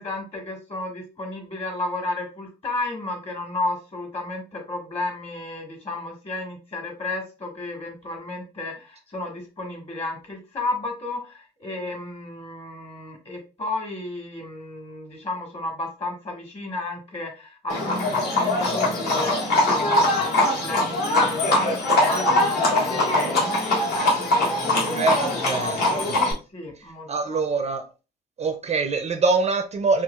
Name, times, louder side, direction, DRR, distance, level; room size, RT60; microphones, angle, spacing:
voice 1, 0.0-26.0 26.5-27.4, left 2 dB, 35° left, 1.4 m, -33 dB
Livestock farm animals working animals, 17.7-26.3, left 2 dB, 65° left, 1.6 m, -22 dB
voice 2, 25.0-25.8 26.1-26.2 26.8-27.8 28.4-30.0, right 4 dB, 35° right, 0.4 m, -24 dB
4.4 x 2.4 x 2.3 m
cardioid pair, 120°, 18 cm